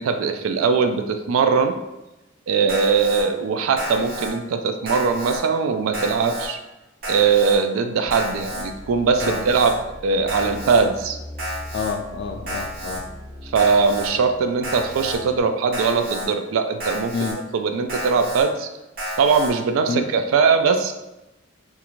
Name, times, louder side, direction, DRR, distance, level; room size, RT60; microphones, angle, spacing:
voice 1, 0.0-1.7 2.5-6.6 7.0-9.8 10.0-11.2 13.4-17.1 17.5-18.7 19.2-20.9, right 5 dB, 90° right, 7 dB, 0.3 m, -20 dB
Alarm, 2.7-3.2 3.8-4.3 4.9-5.4 5.9-6.5 7.0-7.6 8.1-8.6 9.2-9.7 10.3-10.8 11.4-11.9 12.5-13.0 13.6-14.1 14.6-15.2 15.7-16.3 16.8-17.3 17.9-18.4 19.0-19.5, equal, 45° right, 0.8 m, -31 dB
sound 1, 8.0-15.4, equal, 10° right, 0.6 m, -40 dB
voice 2, 11.7-13.0 17.1-17.4 19.9-20.0, left 4 dB, 55° left, 5 dB, 0.3 m, -28 dB
2.4 x 2.4 x 3.0 m, 0.98 s
head